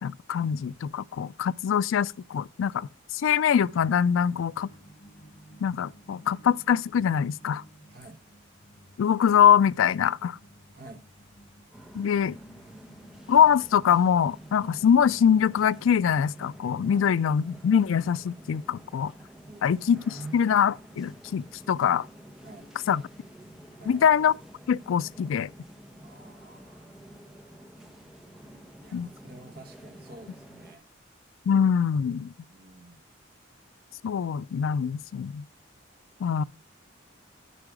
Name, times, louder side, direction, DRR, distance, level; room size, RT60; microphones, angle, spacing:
voice 1, 0.0-2.9 3.1-4.7 5.6-7.6 9.0-10.4 11.9-12.4 13.3-19.1 19.6-20.0 20.3-22.1 22.9-23.0 23.9-24.3 24.7-25.5 28.9-29.1 31.5-32.3 34.0-35.5 36.2-36.4, left 8 dB, 75° left, 0.3 m, -23 dB
sound 1, 3.6-17.1, right 1 dB, 40° left, 0.8 m, -54 dB
voice 2, 10.7-11.1 16.9-17.6 19.4-20.4 22.4-22.7 23.8-24.1 26.0-26.9 28.8-30.8 32.5-33.0, right 2 dB, 45° right, 1.1 m, -47 dB
sound 2, 11.7-30.8, equal, ahead, 0.9 m, -50 dB
10.0 x 4.9 x 4.7 m
head